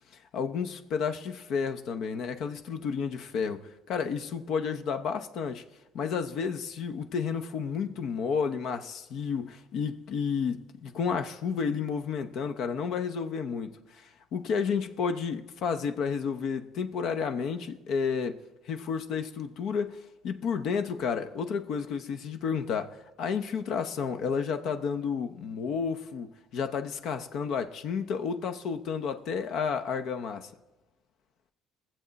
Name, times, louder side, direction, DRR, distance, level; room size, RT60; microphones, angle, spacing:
voice 1, 0.3-5.6 5.9-18.4 18.7-20.0 20.2-30.5, left 6 dB, 55° left, 0.7 m, -31 dB
22.5 x 7.6 x 4.0 m
cardioid pair, 175°, 0 cm